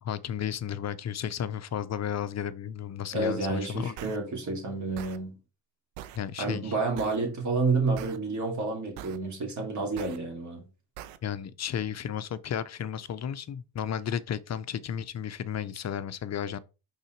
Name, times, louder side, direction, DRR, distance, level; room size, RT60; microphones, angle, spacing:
voice 1, 0.0-3.9 6.1-6.7 11.2-16.6, left 9 dB, 35° left, 0.6 m, -33 dB
voice 2, 3.1-5.4 6.4-10.7, right 3 dB, 35° right, 2.5 m, -29 dB
sound 1, 4.0-4.2 5.0-5.2 6.0-6.2 7.0-7.2 8.0-8.2 9.0-9.2 10.0-10.2 11.0-11.2, right 12 dB, 90° right, 0.7 m, -42 dB
5.5 x 4.1 x 4.4 m
supercardioid pair, 80°, 49 cm